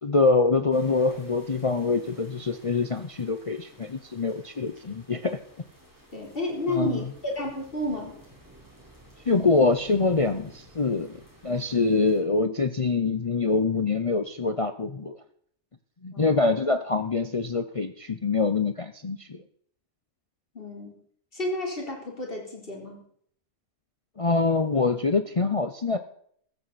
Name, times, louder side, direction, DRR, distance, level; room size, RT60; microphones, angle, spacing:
voice 1, 0.0-5.7 6.7-7.0 9.3-15.2 16.0-19.4 24.2-26.0, left 3 dB, 55° left, 9 dB, 0.3 m, -25 dB
sound 1, 0.7-12.2, right 1 dB, 10° right, 4.1 m, -53 dB
voice 2, 6.1-8.2 16.1-16.4 20.5-20.9 21.3-23.0, left 1 dB, 35° left, 0 dB, 4.1 m, -31 dB
15.0 x 14.0 x 4.1 m, 0.63 s
omnidirectional pair, 1.7 m